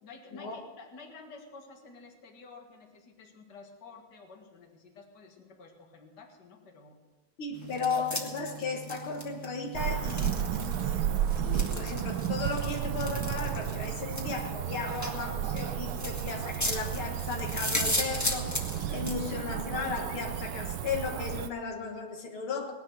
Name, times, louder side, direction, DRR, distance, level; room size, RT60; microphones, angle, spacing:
voice 1, 0.0-7.0 7.7-7.8, left 4 dB, 55° left, 2 dB, 2.4 m, -51 dB
voice 2, 7.4-22.7, left 4 dB, 85° left, 1 dB, 2.5 m, -35 dB
sound 1, 7.5-19.2, equal, 10° left, 1.4 m, -37 dB
Cricket / Motor vehicle (road), 9.7-21.5, right 10 dB, 75° right, 1.5 m, -33 dB
18.5 x 10.5 x 6.3 m, 1.3 s
omnidirectional pair, 2.3 m